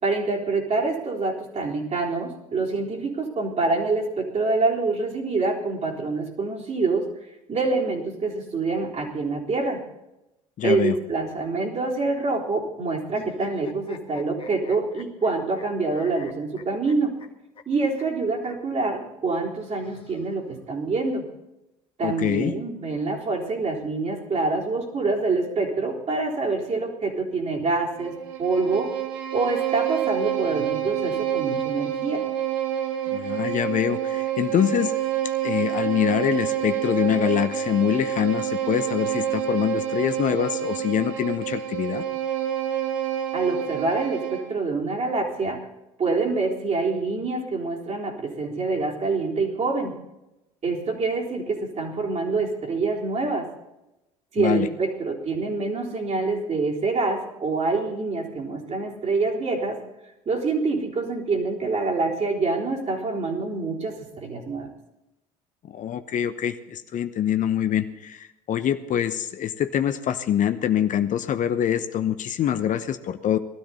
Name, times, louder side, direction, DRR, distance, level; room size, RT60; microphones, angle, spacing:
voice 1, 0.0-9.8 10.6-17.2 17.7-21.3 22.0-28.9 29.3-32.2 43.3-45.6 46.0-50.0 50.6-53.5 54.3-59.8 60.3-64.7, right 3 dB, 40° right, -1 dB, 3.9 m, -26 dB
voice 2, 10.6-11.0 22.0-22.5 33.1-34.9 35.4-42.0 54.4-54.7 65.7-73.4, left 10 dB, 50° left, 10 dB, 0.9 m, -24 dB
sound 1, 13.1-15.6 15.9-17.3 17.6-17.7 18.0-18.1 18.4-18.5 19.6-20.6, left 6 dB, 30° left, 1.8 m, -43 dB
Bowed string instrument, 27.9-44.6, right 11 dB, 75° right, 1.6 m, -28 dB
19.0 x 13.0 x 4.2 m, 0.94 s
hypercardioid pair, 60°, 17 cm